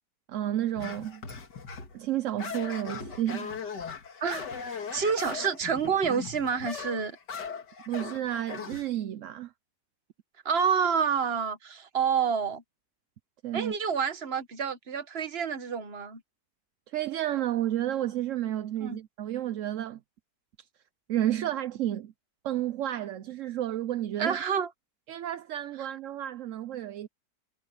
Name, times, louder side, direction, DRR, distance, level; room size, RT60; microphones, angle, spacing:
voice 1, 0.3-1.2 1.9-3.5 7.9-9.5 13.4-13.7 16.9-20.0 21.1-22.1 22.4-24.4 25.1-27.1, right 12 dB, 65° right, 0.8 m, -31 dB
sound 1, 0.8-2.0 2.4-8.9, left 6 dB, 85° left, 2.4 m, -39 dB
voice 2, 4.2-7.2 10.4-12.6 13.5-16.2 18.8-19.0 24.2-24.7, right 6 dB, 40° right, 1.3 m, -28 dB
omnidirectional pair, 1.8 m